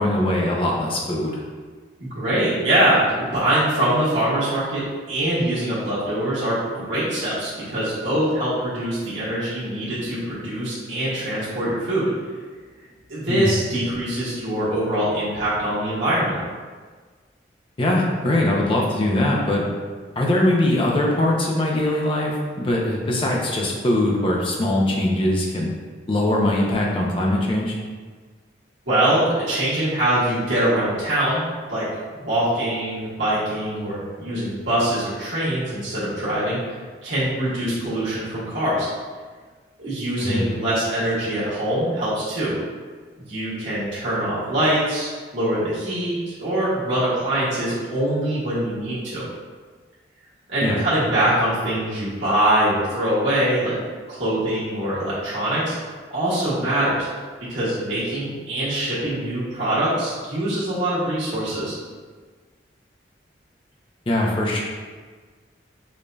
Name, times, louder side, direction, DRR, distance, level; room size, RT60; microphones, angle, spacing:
voice 1, 0.0-1.4 13.3-13.5 17.8-19.6 20.2-25.7 26.1-27.8 40.2-40.4 50.6-50.8 64.1-64.6, left 1 dB, 30° left, -2 dB, 0.5 m, -21 dB
voice 2, 2.0-12.1 13.1-16.4 28.9-31.4 31.7-31.9 32.2-38.9 39.8-42.6 43.2-49.2 50.5-53.8 54.1-57.1 57.5-61.7, right 1 dB, 85° right, -11 dB, 1.3 m, -23 dB
5.0 x 2.6 x 2.2 m, 1.5 s
head